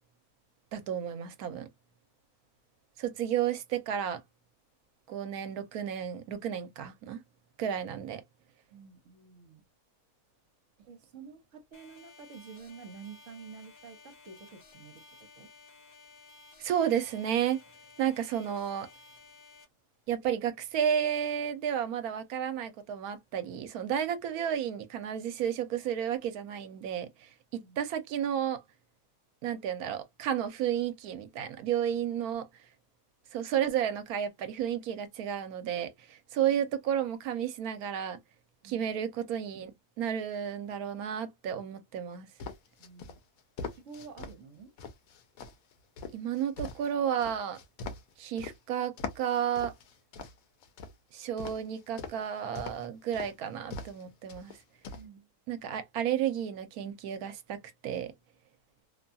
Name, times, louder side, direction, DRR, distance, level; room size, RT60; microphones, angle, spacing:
voice 1, 0.7-1.7 3.0-4.2 5.1-7.2 7.6-8.2 16.6-17.6 18.0-18.9 20.1-28.6 29.4-32.5 33.3-38.2 38.6-42.3 46.1-47.6 48.2-49.7 51.1-54.6 55.5-57.6 57.8-58.1, right 9 dB, 80° right, 1.1 m, -32 dB
voice 2, 8.7-9.6 10.8-15.0 15.4-15.5 27.6-27.8 38.6-38.9 42.8-43.2 43.7-44.7 54.9-55.3, right 5 dB, 55° right, 1.1 m, -49 dB
sound 1, 11.7-19.6, left 4 dB, 40° left, 0.7 m, -55 dB
sound 2, 42.4-44.4 44.8-48.6 49.0-50.9 51.4-52.2 52.6-52.9 53.1-53.3 53.7-54.0 54.3-55.1, left 4 dB, 70° left, 1.0 m, -41 dB
2.8 x 2.3 x 2.5 m
omnidirectional pair, 1.6 m